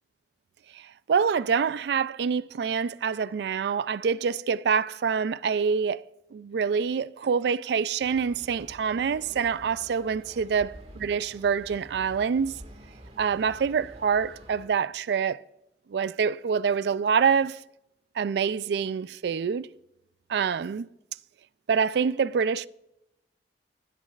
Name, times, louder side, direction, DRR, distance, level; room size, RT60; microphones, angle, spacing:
voice 1, 1.1-6.0 6.3-12.6 13.2-15.4 15.9-17.6 18.2-19.7 20.3-20.9 21.7-22.7, right 6 dB, 70° right, 0.3 m, -26 dB
sound 1, 8.0-14.6, right 1 dB, 35° right, 1.8 m, -48 dB
16.5 x 8.4 x 2.4 m
head